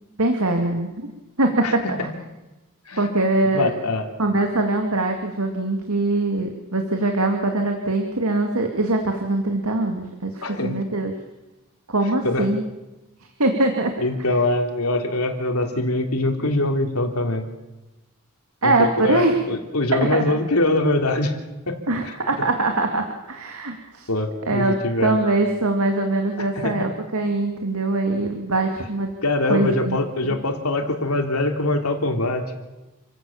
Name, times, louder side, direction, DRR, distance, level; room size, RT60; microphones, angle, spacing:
voice 1, 0.2-1.1 1.4-2.0 3.0-3.7 4.2-11.1 11.9-12.6 13.4-13.9 18.6-19.3 19.9-20.2 21.9-24.1 24.5-29.1 29.5-30.0, right 2 dB, 80° right, 4 dB, 2.4 m, -22 dB
voice 2, 3.5-4.1 10.4-10.8 12.2-12.5 14.0-17.5 18.6-21.3 21.7-21.8 22.0-22.1 24.1-25.2 26.4-26.9 29.2-32.4, left 2 dB, 80° left, 5 dB, 3.1 m, -23 dB
28.5 x 16.0 x 7.2 m, 1.1 s
head